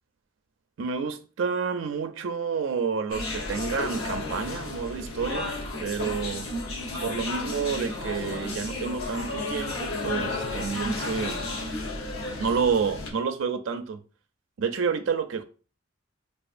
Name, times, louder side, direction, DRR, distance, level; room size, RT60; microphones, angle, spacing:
voice 1, 0.8-6.5 7.0-11.4 12.4-14.0 14.6-15.4, right 5 dB, 65° right, 0.4 m, -29 dB
sound 1, 3.1-13.1, left 2 dB, 90° left, 0.9 m, -32 dB
4.8 x 2.4 x 2.5 m
head